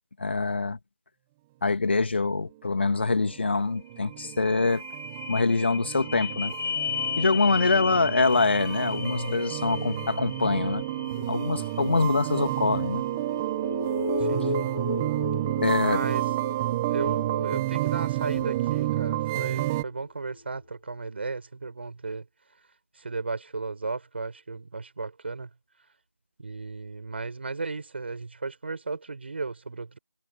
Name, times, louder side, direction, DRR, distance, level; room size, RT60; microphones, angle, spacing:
voice 1, 0.2-0.8 1.6-4.8 5.3-6.5 7.2-10.8 11.3-13.0 15.6-16.0, left 3 dB, 35° left, 2.5 m, -24 dB
sound 1, 2.9-19.8, right 16 dB, 5° right, 1.2 m, -30 dB
sound 2, 3.6-3.7 3.9-19.9 20.3-20.4, left 4 dB, 75° left, 2.3 m, -35 dB
voice 2, 14.3-14.7 15.8-16.3 16.9-22.2 23.0-25.5 26.4-30.0, right 3 dB, 35° right, 6.1 m, -35 dB
figure-of-eight pair, 170°, 10 cm